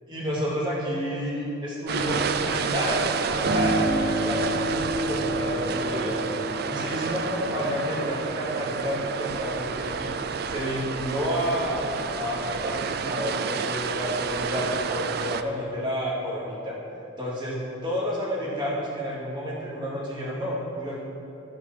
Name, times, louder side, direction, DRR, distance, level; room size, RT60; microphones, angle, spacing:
voice 1, 0.1-6.2 6.5-10.1 10.5-11.8 12.1-16.7 17.2-17.6 17.8-21.0, equal, 25° right, -6 dB, 2.2 m, -30 dB
sound 1, 1.9-15.4, right 5 dB, 50° right, 0.4 m, -30 dB
Piano, 3.4-11.9 12.3-13.3, right 1 dB, 85° right, 2.4 m, -31 dB
11.0 x 5.3 x 6.7 m, 2.9 s
head